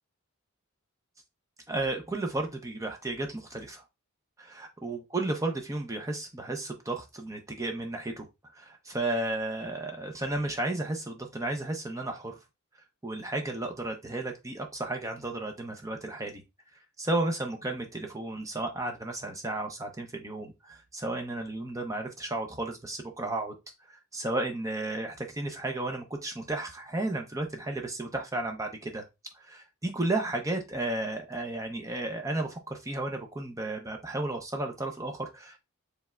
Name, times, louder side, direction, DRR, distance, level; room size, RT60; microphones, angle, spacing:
voice 1, 1.7-3.8 4.4-8.3 8.5-12.4 13.0-16.4 17.0-23.6 23.9-29.0 29.3-35.6, right 2 dB, 15° right, 3 dB, 0.6 m, -33 dB
5.2 x 3.3 x 2.3 m, 0.23 s
head